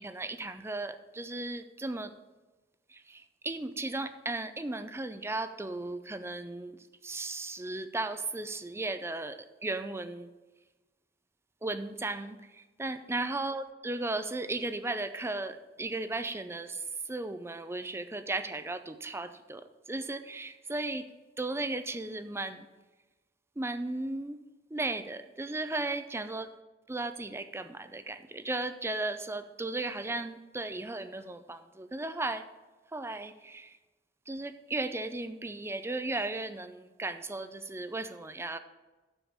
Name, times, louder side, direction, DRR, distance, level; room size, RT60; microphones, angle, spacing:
voice 1, 0.0-2.1 2.9-10.3 11.6-21.1 21.4-22.7 23.6-24.4 24.7-26.5 26.9-32.4 32.9-33.8 34.3-38.6, right 2 dB, 15° right, 10 dB, 0.5 m, -36 dB
7.0 x 7.0 x 7.4 m, 1.2 s
head